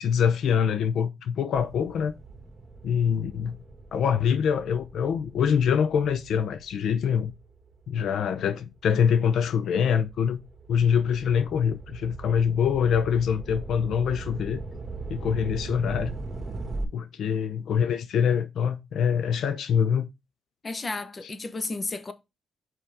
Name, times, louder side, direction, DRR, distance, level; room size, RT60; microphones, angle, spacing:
voice 1, 0.0-2.1 2.8-3.6 3.9-7.3 7.9-10.4 10.7-14.6 15.1-16.1 16.9-20.1, left 7 dB, 70° left, 0.6 m, -24 dB
sound 1, 1.5-8.3 8.9-16.8, right 3 dB, 30° right, 1.8 m, -40 dB
voice 2, 20.6-22.1, left 3 dB, 30° left, 1.0 m, -32 dB
5.5 x 5.5 x 3.5 m
cardioid pair, 90°, 0 cm